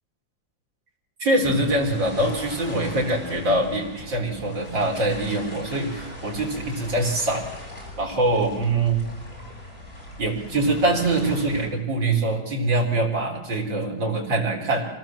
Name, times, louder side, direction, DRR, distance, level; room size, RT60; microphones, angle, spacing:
voice 1, 1.2-7.4 8.0-9.0 10.2-14.9, right 2 dB, 70° right, 0 dB, 4.9 m, -24 dB
sound 1, 1.4-11.7, left 1 dB, 30° left, 6.8 m, -40 dB
25.5 x 18.5 x 7.5 m, 1.0 s
omnidirectional pair, 2.1 m